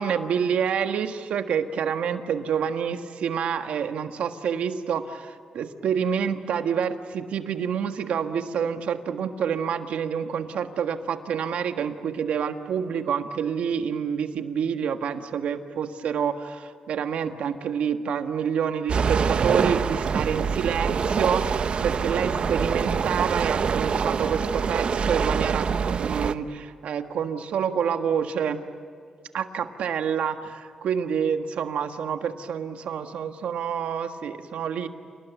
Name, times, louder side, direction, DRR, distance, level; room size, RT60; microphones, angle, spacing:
voice 1, 0.0-28.6 29.3-34.9, right 7 dB, 80° right, 7 dB, 1.6 m, -28 dB
sound 1, 18.9-26.3, right 6 dB, 55° right, 0.9 m, -25 dB
28.5 x 19.5 x 9.2 m, 2.2 s
cardioid pair, 85°, 2 cm